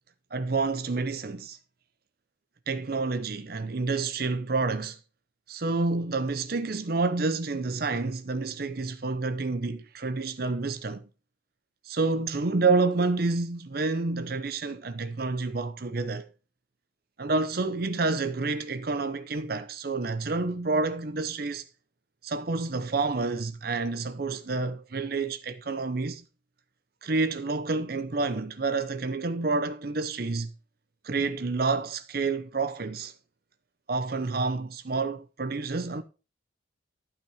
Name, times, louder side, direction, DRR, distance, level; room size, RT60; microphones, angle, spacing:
voice 1, 0.3-1.6 2.7-5.0 5.5-11.1 11.8-16.3 17.2-21.6 22.2-26.2 27.0-30.5 31.0-33.1 33.9-36.0, right 3 dB, 50° right, 0.7 m, -29 dB
12.0 x 5.8 x 4.8 m
head